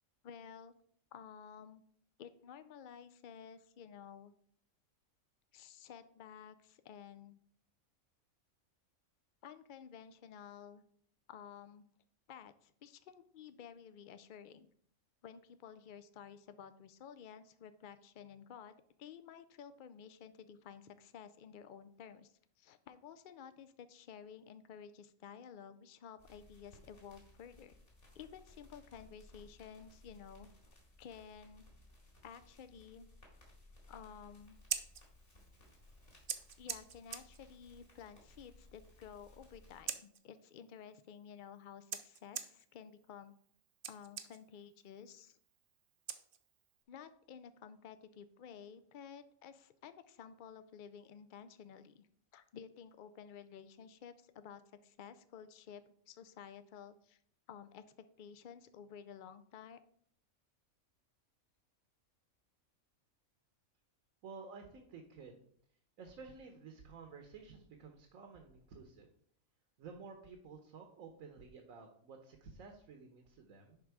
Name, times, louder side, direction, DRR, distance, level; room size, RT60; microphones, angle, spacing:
voice 1, 0.2-0.7 1.1-1.8 2.2-4.3 5.5-7.4 9.4-10.9 11.3-11.9 12.3-14.7 15.2-22.3 22.6-27.8 28.1-30.5 31.0-31.6 32.2-33.1 33.9-34.6 36.6-43.3 43.9-45.4 46.9-52.1 52.3-57.2 57.5-59.8, left 8 dB, 80° left, 12 dB, 0.4 m, -53 dB
sound 1, 26.2-39.8, left 1 dB, 55° left, 2.7 m, -61 dB
Scissors, 34.4-46.8, right 8 dB, 55° right, 0.6 m, -48 dB
voice 2, 64.2-65.4 66.0-69.1 69.8-73.8, right 5 dB, 75° right, 4 dB, 1.3 m, -52 dB
10.5 x 3.7 x 4.7 m, 0.63 s
omnidirectional pair, 1.5 m